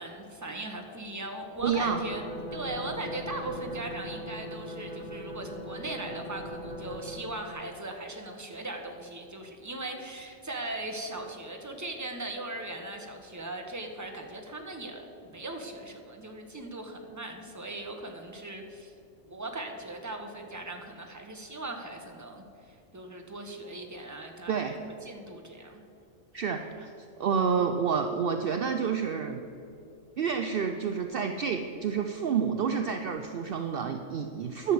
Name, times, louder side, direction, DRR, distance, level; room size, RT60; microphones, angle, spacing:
voice 1, 0.0-18.9 19.3-25.8, right 2 dB, 15° right, 3 dB, 1.1 m, -39 dB
sound 1, 1.6-7.3, equal, 40° left, 2.3 m, -40 dB
voice 2, 1.6-2.0 24.5-24.7 26.3-26.9 27.2-29.4 30.2-34.7, right 6 dB, 60° right, 6 dB, 0.7 m, -29 dB
11.5 x 7.1 x 7.7 m, 2.7 s
omnidirectional pair, 1.2 m